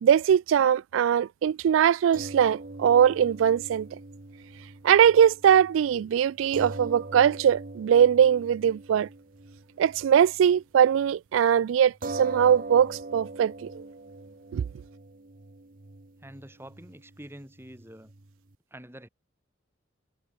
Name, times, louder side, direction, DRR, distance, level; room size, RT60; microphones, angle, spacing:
voice 1, 0.0-3.9 4.8-9.1 9.8-13.8 14.5-14.6, right 8 dB, 80° right, 0.3 m, -21 dB
sound 1, 2.1-10.6 11.0-11.1 12.0-18.6, right 2 dB, 45° right, 1.1 m, -42 dB
voice 2, 16.2-18.1 18.7-19.1, right 1 dB, 10° right, 4.2 m, -46 dB
head